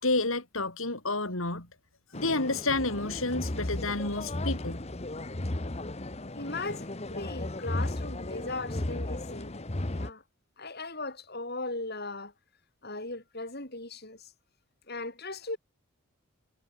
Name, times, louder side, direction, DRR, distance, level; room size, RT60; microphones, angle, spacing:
voice 1, 0.0-1.7 2.1-4.8, left 2 dB, 75° left, 5.4 m, -30 dB
sound 1, 2.1-10.1, left 1 dB, 30° left, 1.1 m, -35 dB
voice 2, 6.4-10.2 10.6-12.3 12.8-14.3 14.9-15.6, left 2 dB, 50° left, 6.8 m, -38 dB
head